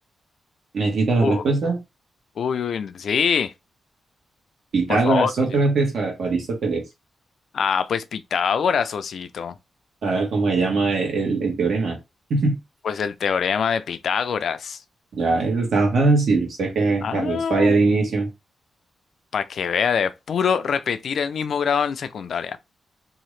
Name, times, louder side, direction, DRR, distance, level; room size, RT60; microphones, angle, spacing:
voice 1, 0.7-1.7 4.7-6.8 10.0-12.0 12.3-12.6 15.1-18.3, right 3 dB, 65° right, 1.3 m, -21 dB
voice 2, 2.4-3.5 4.9-5.3 7.5-9.6 12.8-14.8 17.0-17.7 19.3-22.6, left 7 dB, 65° left, 0.3 m, -24 dB
2.8 x 2.4 x 3.1 m
wide cardioid pair, 150°, 0 cm